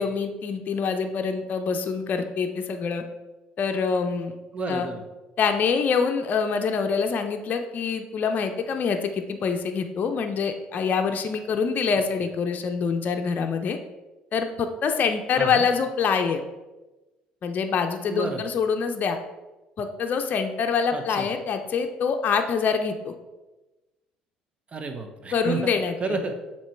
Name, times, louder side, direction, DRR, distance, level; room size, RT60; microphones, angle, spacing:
voice 1, 0.0-3.0 3.6-4.3 4.7-4.9 5.4-13.8 14.3-16.4 17.4-19.2 19.8-23.1 25.3-25.9, left 5 dB, 45° left, 5 dB, 0.6 m, -25 dB
voice 2, 4.5-5.0 15.4-15.7 18.1-18.4 20.9-21.3 24.7-25.7 26.0-26.4, right 3 dB, 35° right, 6 dB, 1.0 m, -31 dB
7.2 x 3.0 x 4.5 m, 1.1 s
hypercardioid pair, 60°, 4 cm